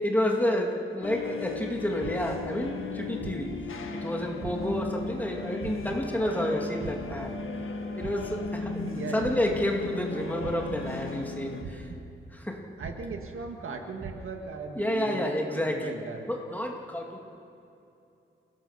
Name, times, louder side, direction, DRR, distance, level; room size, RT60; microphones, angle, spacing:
voice 1, 0.0-3.5 4.0-7.4 8.0-11.9 12.3-12.6 14.8-16.0 16.3-17.2, left 1 dB, 10° left, 0 dB, 2.2 m, -30 dB
sound 1, 1.0-11.6, left 4 dB, 90° left, 1.7 m, -36 dB
sound 2, 2.0-2.9 3.2-4.1 4.4-6.5 6.8-8.9 9.2-10.1 10.4-11.3 11.6-12.5 12.8-13.7 14.0-14.2, right 4 dB, 65° right, 1.5 m, -43 dB
voice 2, 8.8-9.3 12.8-16.3, right 4 dB, 85° right, 3 dB, 2.0 m, -38 dB
28.0 x 17.5 x 5.8 m, 2.7 s
wide cardioid pair, 140°, 21 cm